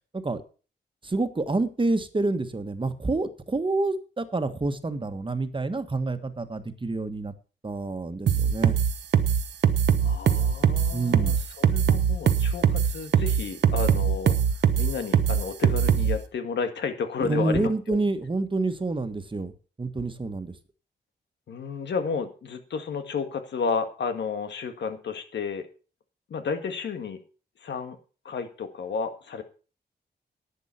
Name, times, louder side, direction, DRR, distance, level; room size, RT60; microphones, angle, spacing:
voice 1, 1.0-7.3 7.6-8.8 10.9-11.4 17.2-19.5 19.8-20.5, right 2 dB, 30° right, 9 dB, 1.6 m, -28 dB
sound 1, 8.3-16.2, right 8 dB, 85° right, 1.1 m, -21 dB
voice 2, 10.0-14.4 14.8-18.0 21.5-25.7 26.3-27.2 27.6-28.0 28.3-29.4, left 5 dB, 85° left, 7 dB, 1.8 m, -32 dB
11.0 x 8.2 x 5.9 m, 0.37 s
cardioid pair, 75°, 18 cm